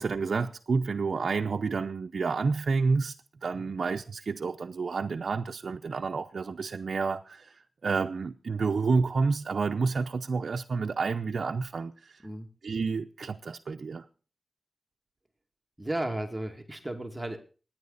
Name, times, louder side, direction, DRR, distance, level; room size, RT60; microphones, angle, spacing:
voice 1, 0.0-3.1 3.4-7.5 7.8-12.2 12.6-14.0, right 4 dB, 75° right, 0.7 m, -29 dB
voice 2, 15.8-17.4, right 1 dB, 15° right, 2.4 m, -34 dB
25.5 x 10.5 x 4.1 m
wide cardioid pair, 85°, 0 cm